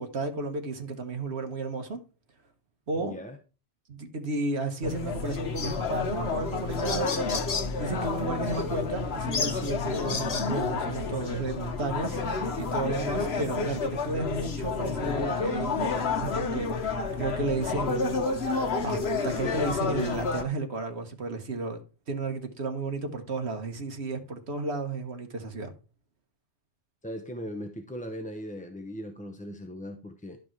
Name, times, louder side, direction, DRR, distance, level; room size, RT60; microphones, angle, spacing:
voice 1, 0.0-2.0 2.9-3.2 3.9-7.4 7.8-18.2 18.8-21.8 22.1-25.7, right 3 dB, 65° right, 1.7 m, -33 dB
voice 2, 3.0-3.4 27.0-30.4, equal, 10° left, 0.7 m, -39 dB
sound 1, 4.8-20.4, left 4 dB, 60° left, 1.4 m, -30 dB
sound 2, 5.6-5.8 6.5-6.6 6.8-7.7 8.5-8.6 9.3-10.5, left 4 dB, 35° left, 0.9 m, -33 dB
11.5 x 5.3 x 4.6 m
omnidirectional pair, 1.2 m